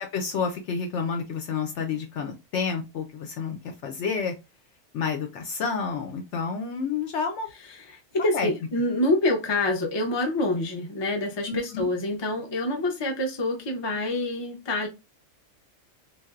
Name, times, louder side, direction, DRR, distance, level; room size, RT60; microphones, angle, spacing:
voice 1, 0.1-4.3 4.9-7.5 8.2-8.5 11.5-11.9, left 5 dB, 70° left, 4 dB, 0.8 m, -30 dB
voice 2, 7.7-14.9, left 1 dB, 35° left, 2 dB, 0.4 m, -26 dB
3.2 x 2.5 x 2.3 m, 0.25 s
omnidirectional pair, 1.4 m